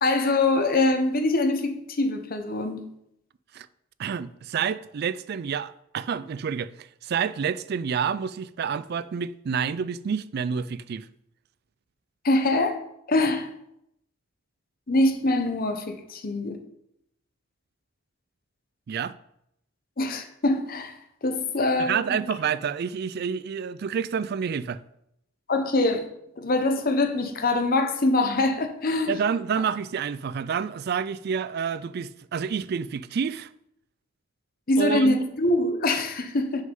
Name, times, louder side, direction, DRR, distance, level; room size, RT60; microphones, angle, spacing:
voice 1, 0.0-2.8 12.2-12.8 13.1-13.5 14.9-16.6 20.0-20.9 21.2-22.2 25.5-26.0 26.4-29.1 34.7-36.6, left 2 dB, 45° left, 0.8 m, -24 dB
voice 2, 4.0-11.1 18.9-19.1 21.8-24.8 29.1-33.5 34.8-35.2, right 6 dB, 50° right, 0.3 m, -28 dB
6.4 x 5.5 x 5.3 m
head